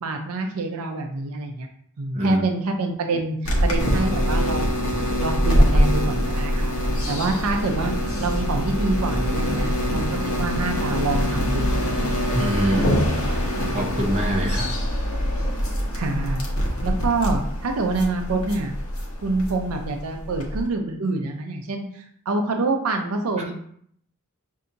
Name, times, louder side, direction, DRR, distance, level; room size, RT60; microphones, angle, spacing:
voice 1, 0.0-1.7 2.0-4.8 5.2-6.7 7.1-7.9 8.2-10.1 10.4-11.8 15.9-16.5 16.8-18.7 19.2-23.5, right 3 dB, 80° right, 4 dB, 0.5 m, -26 dB
sound 1, 3.4-20.7, equal, 70° left, 0.9 m, -24 dB
voice 2, 12.3-13.0 13.7-14.7, equal, 30° right, -1 dB, 0.7 m, -24 dB
5.6 x 2.7 x 2.6 m, 0.65 s
head